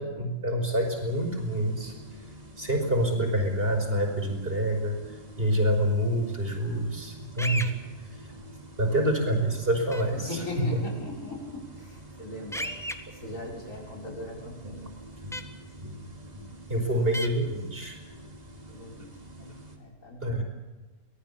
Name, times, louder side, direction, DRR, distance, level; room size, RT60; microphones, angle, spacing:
voice 1, 0.0-2.3 2.6-7.7 8.2-8.3 8.8-10.4 10.7-10.8 16.7-18.0 20.2-20.4, right 1 dB, 45° right, 3 dB, 5.6 m, -27 dB
sound 1, 0.8-19.8, right 1 dB, 30° right, 3.3 m, -46 dB
sound 2, 7.4-7.7 9.9-10.0 12.5-12.9 15.3-15.4 17.1-17.3, equal, ahead, 1.7 m, -32 dB
voice 2, 10.1-12.7 13.1-14.8 18.7-20.4, left 1 dB, 85° left, 0 dB, 6.4 m, -39 dB
24.0 x 19.5 x 7.2 m, 1.2 s
omnidirectional pair, 1.3 m